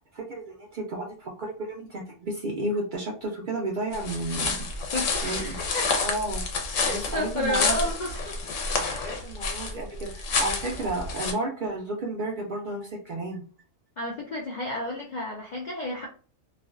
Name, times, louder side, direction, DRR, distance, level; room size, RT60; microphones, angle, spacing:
voice 1, 0.1-4.6 5.2-5.4 6.0-6.4 6.8-7.8 8.8-13.4, right 2 dB, 60° right, -1 dB, 0.5 m, -32 dB
sound 1, 3.9-11.3, left 4 dB, 90° left, 1.0 m, -29 dB
voice 2, 4.9-5.9 6.7-8.4 14.0-16.1, left 1 dB, 65° left, -2 dB, 0.4 m, -31 dB
2.4 x 2.2 x 2.3 m, 0.40 s
omnidirectional pair, 1.3 m